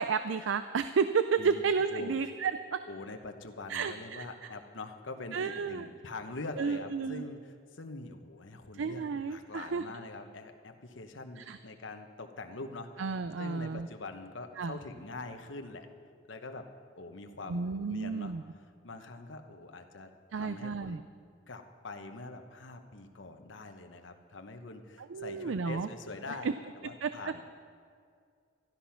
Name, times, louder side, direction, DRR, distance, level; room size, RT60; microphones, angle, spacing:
voice 1, 0.0-2.8 3.7-4.5 5.3-5.9 6.6-7.3 8.7-9.8 11.4-11.6 13.0-13.9 14.6-14.8 17.5-18.4 20.3-21.0 25.1-25.9 26.4-26.5 27.0-27.4, right 5 dB, 80° right, 11 dB, 0.4 m, -32 dB
voice 2, 2.9-12.9 13.4-15.9 16.3-16.7 17.0-18.3 18.8-21.0 21.5-27.4, left 3 dB, 80° left, 6 dB, 1.1 m, -44 dB
13.5 x 12.5 x 5.8 m, 2.2 s
head